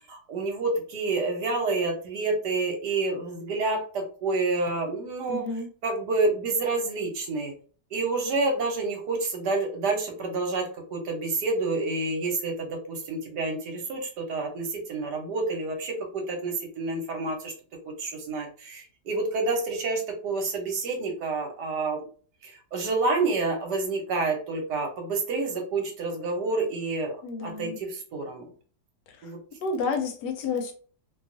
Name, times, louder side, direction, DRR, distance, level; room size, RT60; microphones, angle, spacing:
voice 1, 0.1-5.4 5.8-7.5 7.9-17.5 17.8-22.1 22.4-27.2 27.4-28.5 29.2-29.4, right 3 dB, 75° right, 2 dB, 1.3 m, -28 dB
voice 2, 5.3-5.7 27.2-27.8 29.1-29.3 29.6-30.7, left 4 dB, 80° left, 5 dB, 1.2 m, -30 dB
2.9 x 2.3 x 2.5 m, 0.40 s
omnidirectional pair, 1.8 m